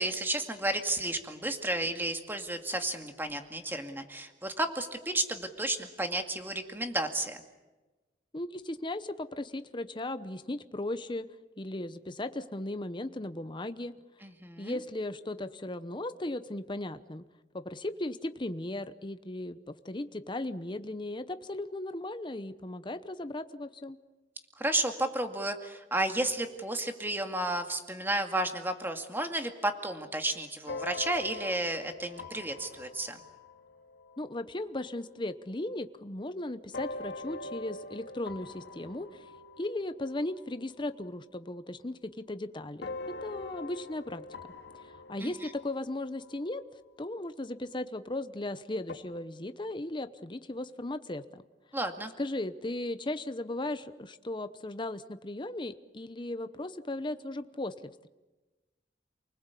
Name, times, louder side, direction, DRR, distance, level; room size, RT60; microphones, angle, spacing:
voice 1, 0.0-7.4 14.2-14.8 24.6-33.2 45.2-45.5 51.7-52.1, right 1 dB, 10° right, 6 dB, 2.2 m, -32 dB
voice 2, 8.3-11.3 11.6-13.9 14.6-17.2 17.5-24.0 34.2-39.3 39.6-44.3 44.8-46.6 47.0-51.4 52.2-58.1, left 1 dB, 25° left, 11 dB, 0.9 m, -37 dB
sound 1, 30.7-35.4 36.7-41.1 41.4-42.4 42.8-47.7 48.9-49.0, left 3 dB, 80° left, 2.3 m, -45 dB
29.0 x 20.0 x 8.4 m, 1.1 s
head